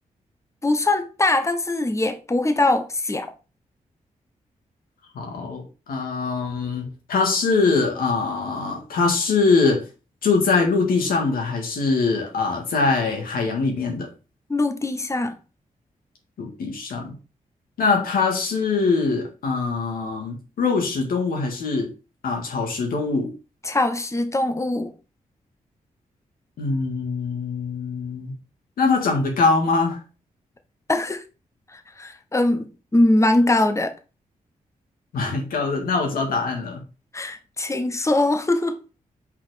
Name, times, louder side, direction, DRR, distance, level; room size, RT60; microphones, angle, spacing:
voice 1, 0.6-3.3 14.5-15.3 23.6-24.9 30.9-31.2 31.7-32.7 32.9-33.9 37.1-38.8, left 2 dB, 20° left, 1.1 m, -22 dB
voice 2, 5.2-9.8 10.2-14.1 16.4-17.2 17.8-21.9 22.2-23.3 26.6-28.3 28.8-30.0 35.1-36.8, left 4 dB, 85° left, 2.0 m, -23 dB
5.6 x 4.3 x 5.0 m
cardioid pair, 55°, 15 cm